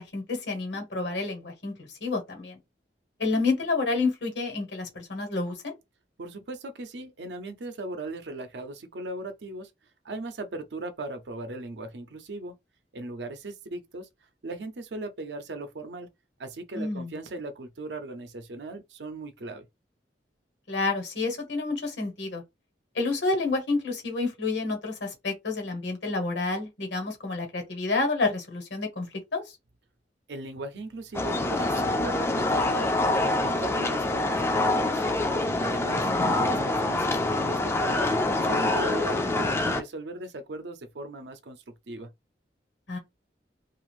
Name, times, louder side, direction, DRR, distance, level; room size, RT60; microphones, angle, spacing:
voice 1, 0.0-2.6 3.2-5.7 16.7-17.1 20.7-22.4 22.9-29.1 29.3-29.4 36.0-36.3 42.9-43.0, left 3 dB, 75° left, 1.2 m, -29 dB
voice 2, 6.2-9.7 10.0-12.5 12.9-14.1 14.4-16.1 16.4-19.7 30.3-35.2 35.6-38.1 38.5-42.1, right 2 dB, 70° right, 0.6 m, -38 dB
sound 1, 31.1-39.8, left 2 dB, 15° left, 0.4 m, -25 dB
2.5 x 2.4 x 3.1 m
head